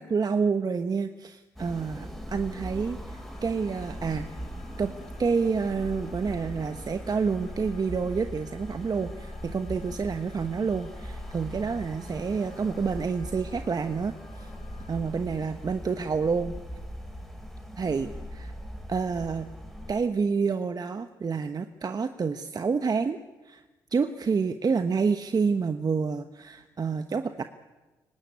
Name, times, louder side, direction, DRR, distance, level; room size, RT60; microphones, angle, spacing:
voice 1, 0.0-4.3 4.8-4.9 5.2-14.5 14.9-16.6 17.8-18.5 18.9-19.5 19.9-23.2 23.4-23.6 23.9-27.4, right 5 dB, 40° right, 9 dB, 1.1 m, -28 dB
sound 1, 1.6-19.9, equal, ahead, 6.4 m, -40 dB
sound 2, 3.1-15.0, left 5 dB, 75° left, 4.8 m, -57 dB
24.0 x 18.5 x 9.8 m, 1.2 s
hypercardioid pair, 50°, 10 cm